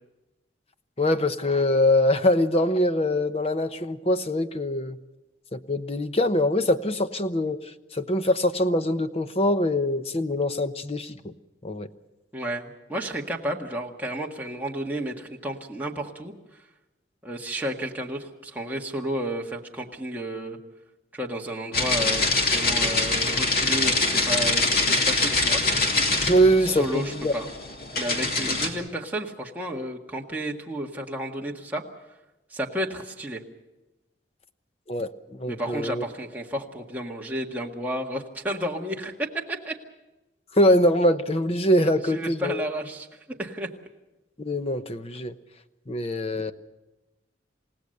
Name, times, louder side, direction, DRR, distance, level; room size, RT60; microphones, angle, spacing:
voice 1, 1.0-5.0 5.5-7.6 7.9-11.3 11.6-11.9 26.2-27.3 34.9-35.1 35.4-36.0 40.6-42.6 44.4-45.3 45.9-46.5, left 1 dB, 35° left, 10 dB, 0.9 m, -23 dB
voice 2, 12.3-16.3 17.2-20.6 21.1-25.6 26.7-27.5 28.0-31.8 32.5-33.4 35.5-39.1 39.5-39.7 42.0-43.7, right 1 dB, 10° right, -1 dB, 1.8 m, -32 dB
sound 1, 21.7-28.7, left 3 dB, 55° left, 2.7 m, -24 dB
28.5 x 17.0 x 6.7 m, 1.0 s
head